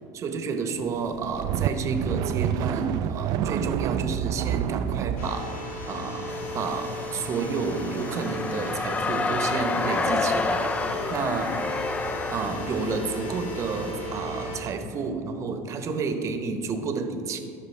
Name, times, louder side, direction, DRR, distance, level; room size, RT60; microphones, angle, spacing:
voice 1, 0.1-5.6 5.9-10.7 11.1-11.6 12.3-17.4, right 4 dB, 40° right, 7 dB, 0.9 m, -30 dB
sound 1, 1.1-5.3, right 9 dB, 55° right, 0.3 m, -27 dB
sound 2, 5.2-14.6, equal, 80° left, 1.6 m, -36 dB
sound 3, 6.3-13.9, left 3 dB, 15° left, 0.4 m, -30 dB
13.0 x 5.7 x 3.3 m, 2.5 s
supercardioid pair, 105°, 8 cm